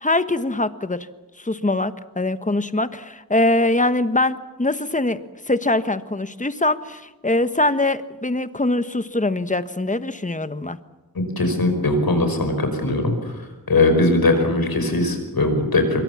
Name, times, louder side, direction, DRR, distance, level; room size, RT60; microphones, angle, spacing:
voice 1, 0.0-1.1 1.4-5.2 5.5-10.8, left 2 dB, 20° left, 11 dB, 1.2 m, -22 dB
voice 2, 11.4-13.1 13.7-16.0, left 2 dB, 85° left, 6 dB, 5.3 m, -19 dB
25.5 x 23.0 x 7.2 m, 1.1 s
wide cardioid pair, 75°, 35 cm